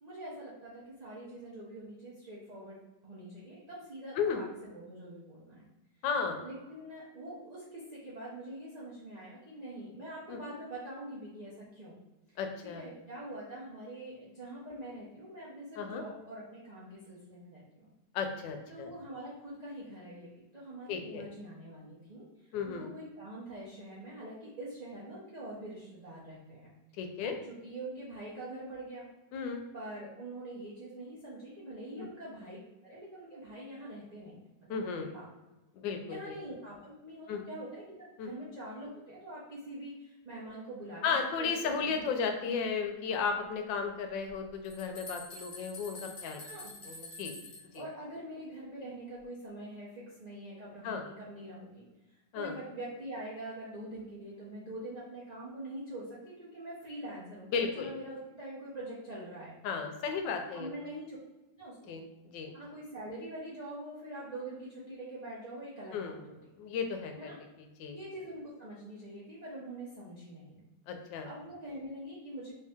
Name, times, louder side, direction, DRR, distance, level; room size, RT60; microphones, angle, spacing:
voice 1, 0.0-5.7 6.4-12.0 12.3-12.4 12.7-17.9 18.7-26.7 27.2-29.1 29.7-35.3 36.0-42.0 46.4-46.7 47.7-59.5 60.5-61.2 61.5-62.0 62.5-66.5 67.2-67.4 67.9-70.6 71.2-72.5, right 1 dB, 80° right, -8 dB, 0.3 m, -44 dB
voice 2, 6.0-6.4 10.3-10.4 12.4-12.8 15.8-16.0 18.1-18.9 20.9-21.2 22.5-22.9 27.0-27.4 29.3-29.6 32.0-32.1 34.7-35.1 35.7-36.3 37.3-37.4 38.2-38.3 41.0-46.4 46.9-47.3 47.7-47.8 50.8-51.0 52.3-52.5 57.5-57.9 59.6-60.7 61.9-62.5 65.9-67.3 67.8-67.9 70.9-71.3, left 5 dB, 90° left, 5 dB, 1.3 m, -34 dB
sound 1, 44.3-44.4 44.6-47.8, left 2 dB, 35° left, 0.9 m, -47 dB
3.1 x 2.7 x 3.4 m, 1.1 s
omnidirectional pair, 1.9 m